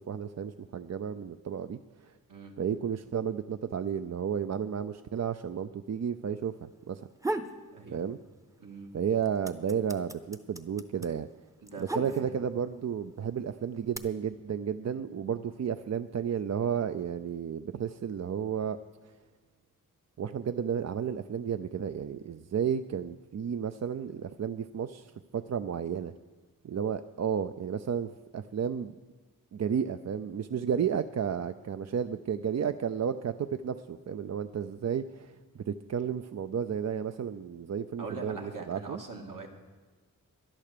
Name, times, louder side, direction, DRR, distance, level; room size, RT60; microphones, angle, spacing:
voice 1, 0.0-2.1 2.6-7.1 7.9-8.2 8.9-11.3 11.8-18.8 20.2-26.1 26.6-28.9 29.5-39.0, right 7 dB, 50° right, 10 dB, 0.5 m, -32 dB
voice 2, 2.3-2.6 7.7-8.0 8.6-8.9 11.6-12.3 38.0-39.5, right 3 dB, 70° right, 2 dB, 1.9 m, -42 dB
sound 1, 6.9-7.6 8.0-8.7 9.0-12.6 13.3-14.0, right 2 dB, 10° right, 0.7 m, -36 dB
12.0 x 11.0 x 6.7 m, 1.4 s
wide cardioid pair, 95°, 34 cm